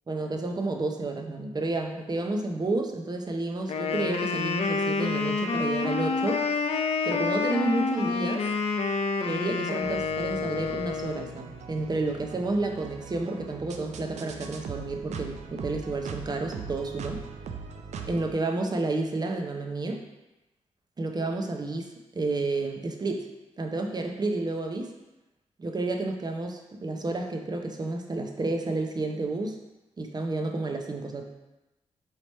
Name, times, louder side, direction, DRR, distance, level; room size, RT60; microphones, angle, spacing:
voice 1, 0.1-6.4 7.1-8.4 9.2-17.2 18.0-20.0 21.0-23.3 23.6-24.9 25.6-29.6 30.0-31.3, right 2 dB, 35° right, 3 dB, 0.6 m, -30 dB
Wind instrument woodwind instrument, 3.6-11.3, left 4 dB, 60° left, 0.4 m, -28 dB
sound 1, 9.8-18.3, right 5 dB, 80° right, 0.4 m, -41 dB
3.2 x 3.0 x 4.1 m, 1.0 s
cardioid pair, 65°, 12 cm